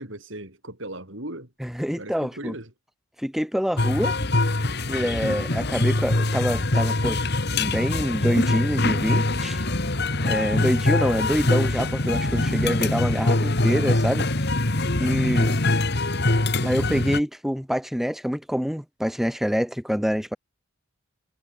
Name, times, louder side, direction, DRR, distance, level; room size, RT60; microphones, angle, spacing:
voice 1, 0.0-1.5 1.9-2.7, right 1 dB, 60° right, 4.3 m, -37 dB
voice 2, 1.6-2.5 3.2-4.2 4.9-7.2 7.5-9.6 10.2-14.3 15.0-15.6 16.6-20.4, equal, ahead, 1.8 m, -26 dB
sound 1, 3.8-17.2, left 2 dB, 50° left, 1.8 m, -23 dB
head